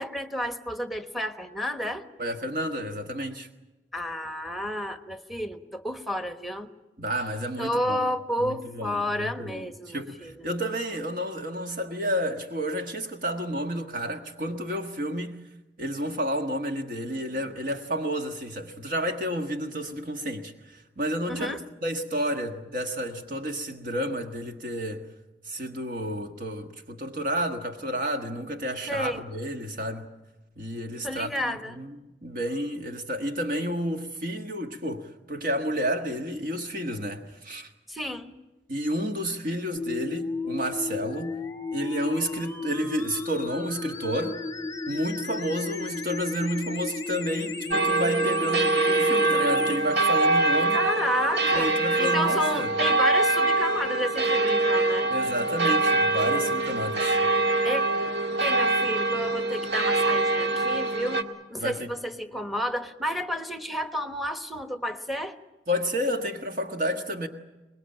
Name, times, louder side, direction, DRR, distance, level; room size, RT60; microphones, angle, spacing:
voice 1, 0.0-2.0 3.9-6.7 7.6-10.5 21.3-21.6 28.9-29.2 31.0-31.8 37.9-38.3 50.7-51.7 52.0-55.1 57.6-57.8 58.4-61.2 61.5-65.4, equal, ahead, 1.2 m, -31 dB
voice 2, 2.2-3.5 7.0-8.1 8.4-15.3 15.8-25.0 25.4-30.1 30.6-37.7 38.7-41.4 41.7-44.4 44.9-50.8 51.5-52.7 55.1-57.2 61.6-61.9 65.7-67.3, equal, 50° right, 1.5 m, -31 dB
sound 1, 39.8-49.8, left 3 dB, 20° left, 1.1 m, -34 dB
sound 2, 47.7-61.2, right 2 dB, 70° right, 1.7 m, -24 dB
24.0 x 21.0 x 8.9 m
head